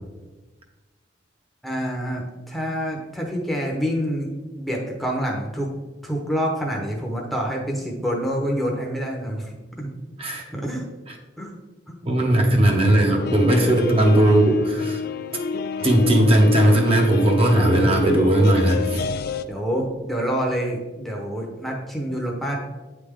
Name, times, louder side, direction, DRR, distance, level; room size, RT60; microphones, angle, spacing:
voice 1, 1.6-4.3 4.6-5.7 6.0-9.9 10.5-10.8 11.4-11.5 11.9-12.0 19.5-22.6, equal, ahead, -1 dB, 0.8 m, -27 dB
voice 2, 12.1-15.0 15.8-19.0, right 1 dB, 35° right, 0 dB, 0.9 m, -18 dB
sound 1, 13.2-19.5, left 6 dB, 60° left, 0.3 m, -28 dB
8.7 x 3.3 x 3.6 m, 1.2 s
head